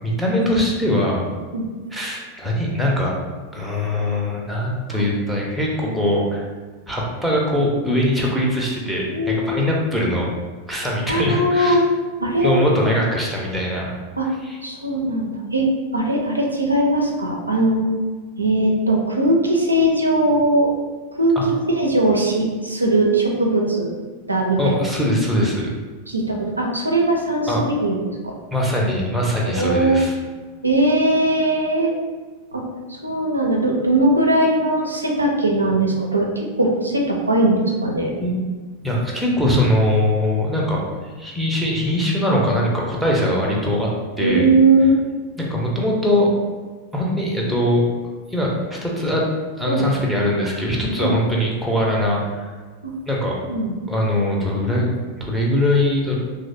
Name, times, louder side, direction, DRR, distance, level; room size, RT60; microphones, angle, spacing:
voice 1, 0.0-1.3 1.9-3.1 3.5-6.4 6.9-10.3 10.7-11.8 12.4-13.9 14.4-14.6 21.4-21.5 24.6-25.7 27.5-27.6 28.5-30.1 38.2-38.5 38.8-40.8 41.2-43.9 44.2-44.5 45.4-46.3 46.9-47.8 48.3-49.3 49.6-52.5 53.1-53.4 53.9-56.2, left 1 dB, ahead, -4 dB, 0.6 m, -21 dB
voice 2, 9.1-9.7 11.1-11.8 12.2-12.5 14.2-14.3 14.6-17.8 18.4-20.7 21.2-23.9 24.3-24.7 26.1-28.3 29.5-30.0 30.6-31.9 32.5-32.6 32.9-38.1 44.2-45.0 49.7-49.9 51.0-51.1 52.8-52.9 53.5-53.7, right 1 dB, 80° right, 0 dB, 0.4 m, -19 dB
3.1 x 2.5 x 2.6 m, 1.4 s
figure-of-eight pair, 90°, 0 cm